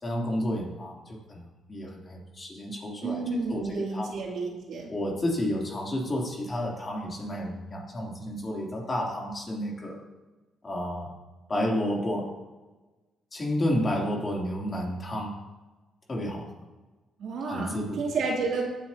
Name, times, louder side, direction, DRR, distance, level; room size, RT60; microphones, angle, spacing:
voice 1, 0.0-3.2 3.5-4.1 4.9-10.0 10.6-11.1 11.5-12.3 13.3-15.3 16.1-16.5 17.4-18.0, left 1 dB, 30° left, -2 dB, 3.1 m, -31 dB
voice 2, 3.0-4.9 17.2-18.6, right 4 dB, 70° right, -1 dB, 2.8 m, -31 dB
17.5 x 9.2 x 2.9 m, 1.2 s
cardioid pair, 90°, 0 cm